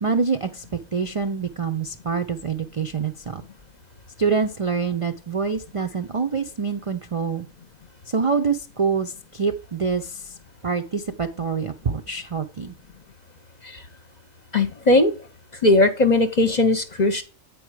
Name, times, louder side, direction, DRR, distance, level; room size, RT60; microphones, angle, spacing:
voice 1, 0.0-3.4 4.2-7.5 8.1-10.3 10.6-12.7, right 5 dB, 45° right, 6 dB, 0.4 m, -26 dB
voice 2, 14.5-15.1 15.6-17.2, left 2 dB, 40° left, 8 dB, 0.7 m, -18 dB
8.6 x 4.8 x 4.7 m, 0.35 s
omnidirectional pair, 1.4 m